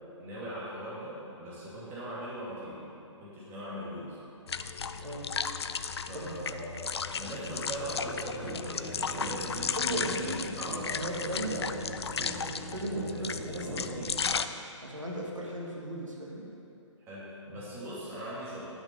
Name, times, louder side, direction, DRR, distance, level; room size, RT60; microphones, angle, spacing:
voice 1, 0.2-2.8 3.2-4.2 6.1-11.0 13.0-14.1 17.0-18.7, equal, 15° right, -8 dB, 2.3 m, -40 dB
sound 1, 4.5-14.5, left 6 dB, 55° left, 0.5 m, -35 dB
voice 2, 6.1-6.6 9.8-10.4 10.9-11.8 12.6-14.0 14.8-16.5, right 1 dB, 85° right, -3 dB, 2.3 m, -37 dB
sound 2, 8.4-14.4, right 2 dB, 35° right, 2.2 m, -42 dB
11.0 x 6.6 x 6.7 m, 2.7 s
figure-of-eight pair, 135°, 16 cm